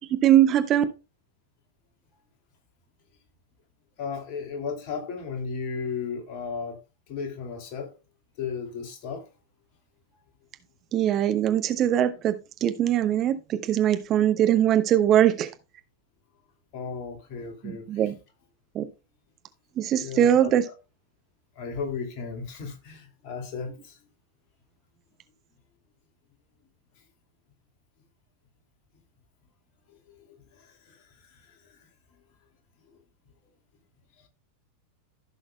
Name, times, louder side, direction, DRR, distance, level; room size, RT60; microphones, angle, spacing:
voice 1, 0.2-0.8 10.9-12.3 12.6-15.5 17.6-18.1 18.7-18.9 19.8-20.6, right 11 dB, 30° right, 1.0 m, -21 dB
voice 2, 4.0-6.8 7.1-7.9 8.4-9.3 16.7-18.1 19.9-20.7 21.6-24.0 29.9-31.8, left 5 dB, 45° left, 2.5 m, -35 dB
15.5 x 6.4 x 2.2 m
figure-of-eight pair, 90°, 0 cm